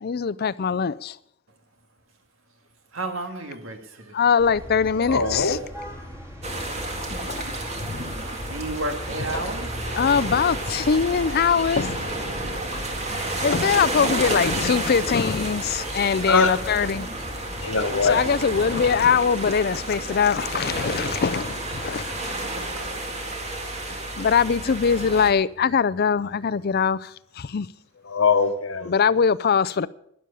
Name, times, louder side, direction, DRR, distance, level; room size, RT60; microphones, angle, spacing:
voice 1, 0.0-1.2 4.1-5.6 7.3-7.4 7.8-8.1 9.3-9.4 9.9-12.1 12.6-12.7 13.2-17.1 18.0-22.3 24.2-27.7 28.9-29.9, left 6 dB, 50° left, 0.5 m, -22 dB
voice 2, 2.9-4.2 5.5-5.6 8.5-9.7 10.1-10.4 15.5-15.6 19.9-20.2 22.8-22.9, right 2 dB, 80° right, 2.0 m, -33 dB
sound 1, 4.4-19.1, equal, 15° right, 2.5 m, -39 dB
voice 3, 5.0-5.6 16.3-16.5 17.6-18.2 28.1-28.9, left 4 dB, 85° left, 1.2 m, -21 dB
sound 2, 6.4-25.3, right 1 dB, 35° right, 2.1 m, -31 dB
12.0 x 11.0 x 6.9 m
head